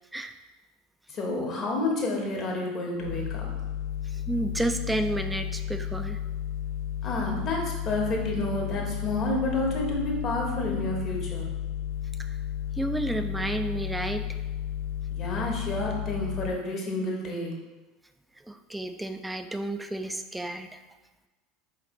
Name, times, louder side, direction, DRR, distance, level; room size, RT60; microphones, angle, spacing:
voice 1, 1.1-3.5 7.0-11.5 15.1-17.6, left 2 dB, 45° left, -1 dB, 1.2 m, -30 dB
sound 1, 3.0-16.5, left 10 dB, 75° left, 0.4 m, -33 dB
voice 2, 4.0-6.2 12.2-12.3 12.8-14.2 18.4-20.8, right 1 dB, 10° right, 7 dB, 0.4 m, -31 dB
4.8 x 3.2 x 3.0 m, 1.2 s
hypercardioid pair, 75°, 0 cm